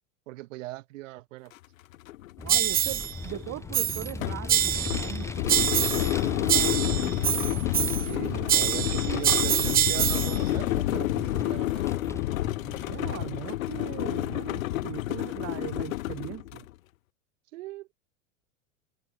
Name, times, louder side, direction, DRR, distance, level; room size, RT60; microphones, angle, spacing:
voice 1, 0.3-1.5 7.9-11.9 17.5-17.9, right 18 dB, 70° right, 4.9 m, -39 dB
sound 1, 1.5-1.6 1.9-16.7, left 16 dB, 85° left, 0.8 m, -30 dB
Vehicle, 2.4-13.3, left 2 dB, 5° left, 2.3 m, -38 dB
voice 2, 2.4-7.2 12.8-16.7, right 16 dB, 40° right, 3.2 m, -40 dB
sound 2, 2.5-3.1 3.7-4.1 4.5-5.1 5.5-6.2 6.5-8.1 8.5-10.4, right 11 dB, 25° right, 0.8 m, -25 dB
supercardioid pair, 125°, 39 cm